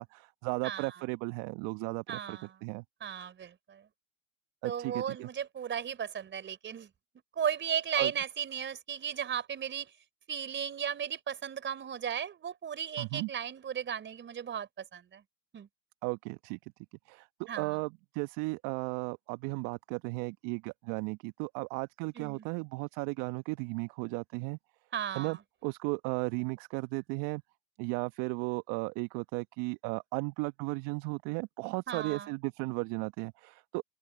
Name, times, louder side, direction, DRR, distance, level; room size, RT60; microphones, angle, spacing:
voice 1, 0.0-2.8 4.6-5.3 8.0-8.1 13.0-13.3 16.0-16.6 17.1-24.6 25.1-25.4 25.6-27.4 27.8-33.8, right 28 dB, 50° right, 1.3 m, -35 dB
voice 2, 0.6-1.0 2.1-2.6 3.0-3.9 4.6-6.9 7.4-9.9 10.3-15.2 15.5-15.7 17.5-17.8 22.1-22.4 24.9-25.4 31.9-32.3, right 8 dB, 25° right, 4.6 m, -35 dB
open air
hypercardioid pair, 95°, 42 cm